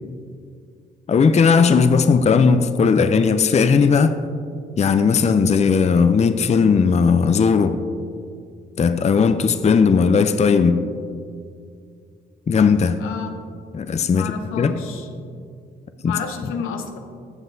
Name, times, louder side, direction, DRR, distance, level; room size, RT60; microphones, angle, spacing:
voice 1, 1.1-4.2 4.8-7.8 8.8-10.8 12.5-13.0 13.7-14.3 14.6-14.7 16.0-16.1, left 5 dB, 30° left, 10 dB, 0.5 m, -17 dB
voice 2, 13.0-13.3 14.1-15.1 16.0-17.0, left 6 dB, 80° left, 5 dB, 0.8 m, -30 dB
14.0 x 7.3 x 2.7 m, 2.3 s
supercardioid pair, 55°, 21 cm